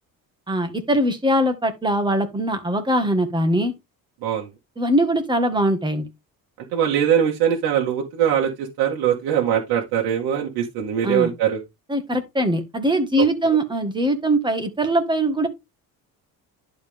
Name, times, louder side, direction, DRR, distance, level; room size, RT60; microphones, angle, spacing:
voice 1, 0.5-3.7 4.8-6.1 11.0-11.3 11.9-15.5, right 1 dB, 10° right, 1.9 m, -21 dB
voice 2, 6.7-11.6 13.2-13.3, right 9 dB, 85° right, 2.0 m, -22 dB
11.0 x 4.7 x 3.6 m
cardioid pair, 130°, 36 cm